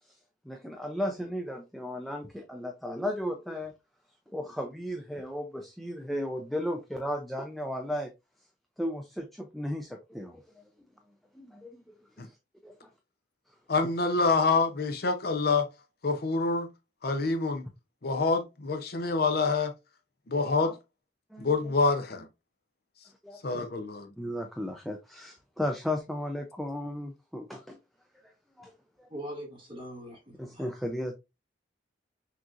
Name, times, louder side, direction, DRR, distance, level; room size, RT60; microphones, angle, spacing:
voice 1, 0.5-3.7 4.3-8.1 8.8-10.6 11.3-11.9 12.2-12.4 12.6-12.7 20.6-20.7 21.3-21.7 23.2-23.6 24.2-27.8 28.2-28.3 28.6-28.7 29.0-29.1 30.4-31.1, left 1 dB, ahead, 0.5 m, -35 dB
voice 2, 13.7-15.7 16.0-16.7 17.0-17.6 18.0-19.7 20.3-20.8 21.4-22.3 23.4-24.1, left 3 dB, 55° left, 0.7 m, -26 dB
voice 3, 29.1-30.7, equal, 30° right, 2.2 m, -42 dB
6.1 x 2.9 x 2.5 m
head